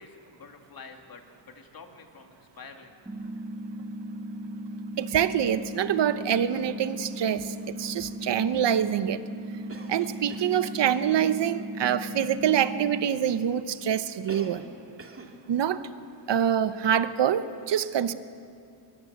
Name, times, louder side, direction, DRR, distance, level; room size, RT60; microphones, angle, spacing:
voice 1, 0.0-3.0, left 4 dB, 55° left, 4 dB, 2.4 m, -48 dB
sound 1, 3.1-13.1, right 1 dB, 10° right, 2.4 m, -37 dB
voice 2, 5.0-9.2 9.9-14.6 15.5-15.8 16.3-18.1, right 9 dB, 75° right, 12 dB, 1.1 m, -25 dB
Cough, 9.7-11.3 14.3-14.7 15.0-15.4, right 3 dB, 30° right, 2.4 m, -43 dB
23.5 x 22.5 x 8.1 m, 2.4 s
wide cardioid pair, 140°, 42 cm